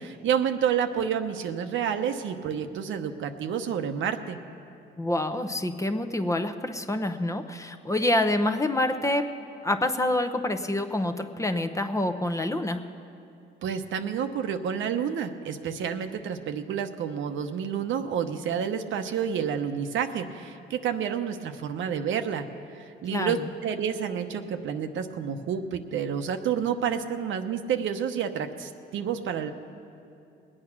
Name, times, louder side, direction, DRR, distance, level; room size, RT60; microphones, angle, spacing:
voice 1, 0.0-4.4 13.6-22.5 22.7-29.5, right 8 dB, 75° right, 7 dB, 0.9 m, -29 dB
voice 2, 5.0-9.3 9.6-12.8 23.1-23.3, left 1 dB, 15° left, 8 dB, 0.7 m, -27 dB
20.5 x 8.8 x 6.0 m, 2.6 s
cardioid pair, 90°, 20 cm